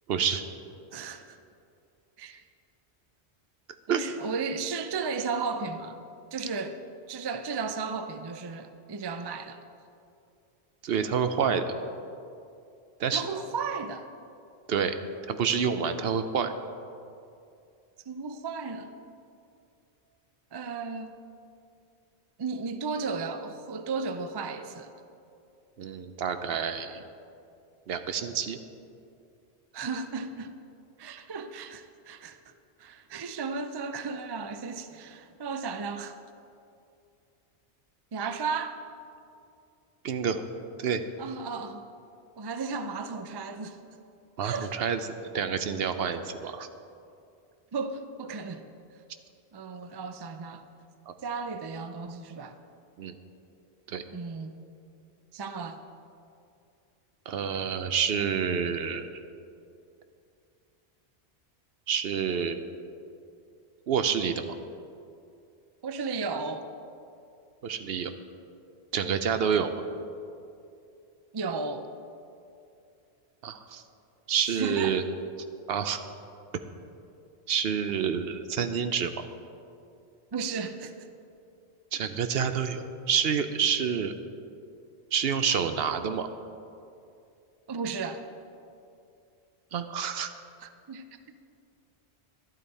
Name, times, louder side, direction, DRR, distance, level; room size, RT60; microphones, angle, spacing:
voice 1, 0.1-0.4 3.9-4.0 10.8-11.8 13.0-13.3 14.7-15.0 15.3-16.5 25.8-27.0 27.9-28.6 40.0-40.4 40.8-41.0 44.4-45.0 45.3-46.7 51.1-51.2 53.0-53.1 53.9-54.0 57.3-59.1 61.9-62.6 63.9-64.5 67.6-68.1 68.9-69.7 73.4-73.8 74.3-75.0 75.7-76.0 77.5-79.3 81.9-84.2 85.1-86.3 89.7-90.3, right 7 dB, 70° right, 9 dB, 0.8 m, -28 dB
voice 2, 0.9-1.4 2.2-2.4 3.9-6.0 6.3-6.8 7.1-9.6 13.1-14.1 18.1-18.9 20.5-21.2 22.4-24.9 29.7-30.5 31.0-32.4 32.8-36.2 38.1-38.8 41.2-41.9 42.4-43.8 44.4-44.7 46.6-46.7 47.7-48.7 49.5-50.6 51.2-52.5 54.1-54.5 55.3-55.8 65.8-66.7 71.3-71.9 74.4-75.0 80.3-81.1 87.7-88.3 90.6-91.1, right 4 dB, 35° right, 9 dB, 0.4 m, -34 dB
12.0 x 12.0 x 4.2 m, 2.6 s
omnidirectional pair, 1.1 m